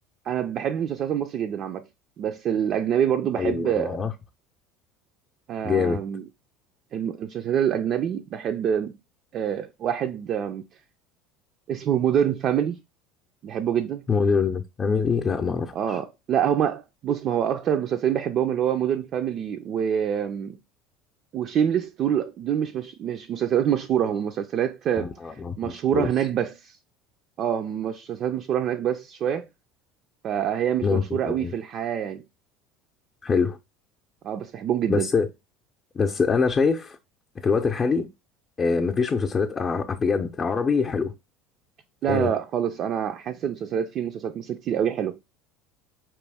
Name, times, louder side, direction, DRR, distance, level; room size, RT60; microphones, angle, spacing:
voice 1, 0.3-1.9 2.2-4.1 5.5-6.2 6.9-9.0 9.3-10.6 11.7-12.8 13.4-14.1 15.7-20.6 21.3-25.1 25.6-26.8 27.4-29.5 30.2-32.2 34.2-35.1 42.0-45.2, right 9 dB, 50° right, 0.4 m, -26 dB
voice 2, 3.4-4.1 5.6-6.0 14.1-16.0 25.0-26.1 30.8-31.5 33.2-33.6 34.9-35.3 35.9-37.0 37.4-38.1 38.6-41.1 42.1-42.3, left 5 dB, 30° left, 0.6 m, -24 dB
4.6 x 3.1 x 3.4 m
supercardioid pair, 95°, 0 cm